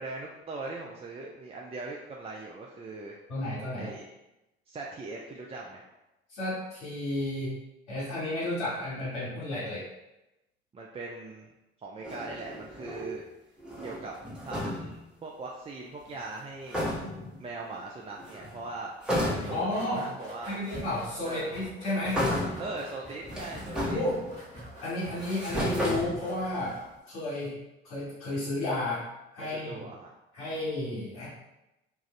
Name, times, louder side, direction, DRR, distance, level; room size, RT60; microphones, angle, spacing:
voice 1, 0.0-3.2 3.7-4.1 4.7-5.8 10.7-11.5 11.8-13.2 13.8-14.1 14.4-16.8 17.4-18.9 19.4-20.6 21.2-21.5 22.6-24.0 29.4-30.1 30.5-30.6, right 3 dB, 20° right, -2 dB, 0.4 m, -40 dB
voice 2, 3.3-3.9 6.3-7.6 7.9-9.8 19.5-20.0 20.5-22.2 23.9-24.2 24.8-26.8 27.1-27.5 27.8-29.0 29.3-29.8 30.3-31.3, left 1 dB, 70° left, -11 dB, 1.4 m, -32 dB
sound 1, 12.0-13.2 13.6-15.0 16.4-16.5 16.7-17.4 18.2-18.6 19.0-19.8 20.7-20.8 22.1-22.8 23.2-24.5 25.0-26.6, equal, 5° right, 1.0 m, -33 dB
sound 2, 19.1-27.0, equal, 20° left, 1.3 m, -45 dB
2.6 x 2.4 x 3.1 m, 0.95 s
hypercardioid pair, 55°, 31 cm